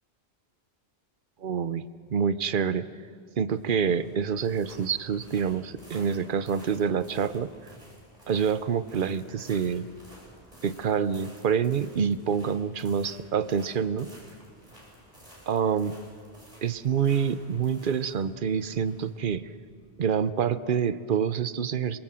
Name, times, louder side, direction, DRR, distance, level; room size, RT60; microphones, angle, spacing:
voice 1, 1.4-1.8 2.1-2.9 3.4-7.5 8.3-9.8 10.6-14.1 15.5-15.9 16.6-19.4 20.0-22.0, right 7 dB, 55° right, 14 dB, 0.9 m, -27 dB
sound 1, 3.5-20.4, equal, 35° right, 7.2 m, -53 dB
26.0 x 22.0 x 7.7 m, 2.1 s
omnidirectional pair, 1.1 m